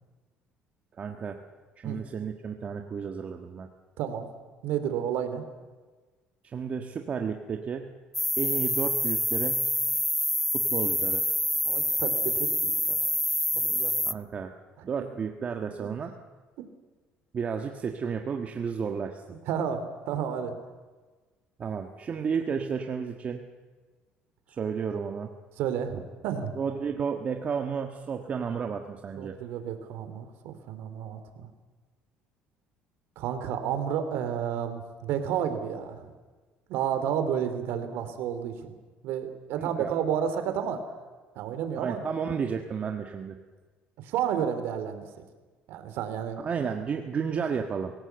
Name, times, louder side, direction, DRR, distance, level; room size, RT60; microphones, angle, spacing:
voice 1, 1.0-1.4 1.8-3.7 6.4-8.0 8.4-9.7 10.5-11.2 14.0-14.5 14.8-16.1 17.3-19.2 21.6-23.4 24.5-25.3 26.6-29.3 39.5-39.9 41.8-43.4 46.4-47.9, right 6 dB, 35° right, 4 dB, 1.5 m, -32 dB
voice 2, 4.0-4.3 4.6-5.4 11.6-13.0 13.5-14.0 15.8-15.9 19.4-20.5 25.6-26.5 29.1-31.5 33.2-36.1 36.7-38.7 39.0-40.8 41.3-42.0 44.0-45.0 45.7-46.4, right 8 dB, 80° right, 9 dB, 2.9 m, -31 dB
sound 1, 8.1-14.1, equal, 5° left, 0.7 m, -27 dB
24.0 x 17.0 x 8.0 m, 1.3 s
cardioid pair, 115°, 4 cm